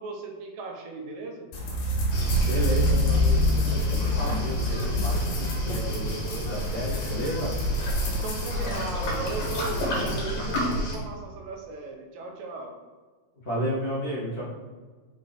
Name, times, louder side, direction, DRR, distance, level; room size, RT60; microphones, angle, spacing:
voice 1, 0.0-1.5 8.1-12.8, right 3 dB, 80° right, 2 dB, 2.4 m, -37 dB
sound 1, 1.5-9.9, left 1 dB, 85° left, 3.0 m, -28 dB
Waves surf, 2.1-11.0, equal, 55° left, 2.2 m, -29 dB
voice 2, 2.5-7.5 13.4-14.4, equal, 35° left, -7 dB, 1.6 m, -32 dB
5.2 x 5.1 x 4.1 m, 1.4 s
omnidirectional pair, 4.1 m